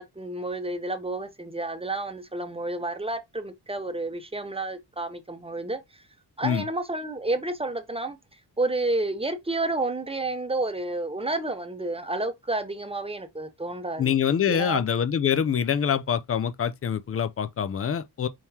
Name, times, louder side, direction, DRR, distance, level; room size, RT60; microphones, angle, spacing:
voice 1, 0.0-5.8 6.4-8.2 8.6-14.1 14.5-14.8, right 2 dB, 15° right, 0.7 m, -30 dB
voice 2, 14.0-18.3, left 8 dB, 35° left, 0.4 m, -25 dB
4.5 x 3.8 x 2.8 m
wide cardioid pair, 115°, 41 cm